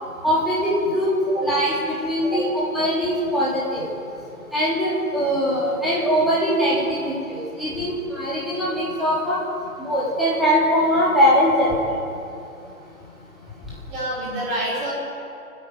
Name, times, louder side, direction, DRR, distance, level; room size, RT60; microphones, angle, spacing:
voice 1, 0.2-1.1 1.4-2.5 2.7-3.8 4.5-9.4 9.8-11.7, equal, ahead, -9 dB, 3.6 m, -21 dB
voice 2, 13.9-14.9, right 1 dB, 15° right, -7 dB, 6.1 m, -27 dB
28.5 x 10.0 x 9.3 m, 2.7 s
figure-of-eight pair, 150°, 45 cm